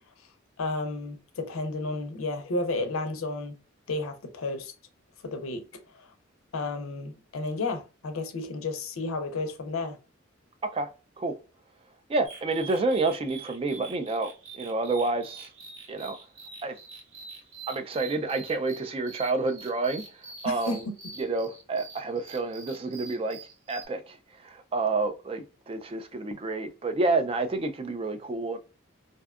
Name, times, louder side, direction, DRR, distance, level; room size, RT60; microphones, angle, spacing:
voice 1, 0.6-3.5 3.9-4.7 5.2-5.6 5.9-6.1 6.5-10.0 20.4-20.8, left 2 dB, 80° left, 0.5 m, -32 dB
voice 2, 12.1-15.5 15.9-16.2 16.6-16.8 17.7-20.0 20.4-20.8 21.2-23.4 23.7-24.2 24.4-28.6, right 3 dB, 25° right, 0.3 m, -29 dB
sound 1, 12.2-23.9, right 4 dB, 70° right, 0.8 m, -46 dB
2.6 x 2.2 x 2.3 m
head